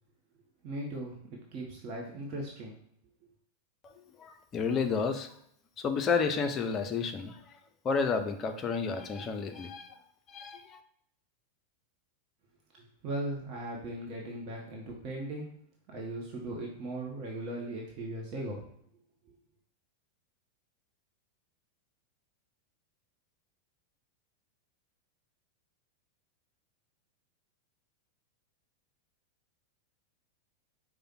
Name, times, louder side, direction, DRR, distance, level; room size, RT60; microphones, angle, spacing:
voice 1, 0.6-1.2 1.5-2.8 13.0-15.5 15.9-18.6, right 1 dB, 35° right, -2 dB, 0.9 m, -38 dB
voice 2, 3.8-5.3 5.8-7.6 7.8-10.0 10.3-10.8, left 5 dB, 30° left, 7 dB, 0.5 m, -31 dB
4.9 x 2.1 x 4.4 m, 0.68 s
figure-of-eight pair, 90°, 0 cm